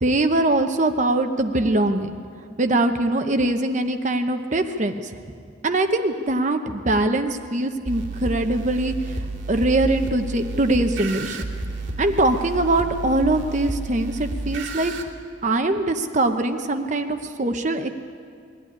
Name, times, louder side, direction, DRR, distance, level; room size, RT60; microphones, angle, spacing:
voice 1, 0.0-2.1 2.6-5.1 5.6-8.9 9.5-11.4 12.0-15.1 15.4-17.9, right 2 dB, 40° right, 7 dB, 0.8 m, -22 dB
sound 1, 7.8-15.0, right 3 dB, 65° right, 2.6 m, -31 dB
21.5 x 14.5 x 9.9 m, 2.3 s
head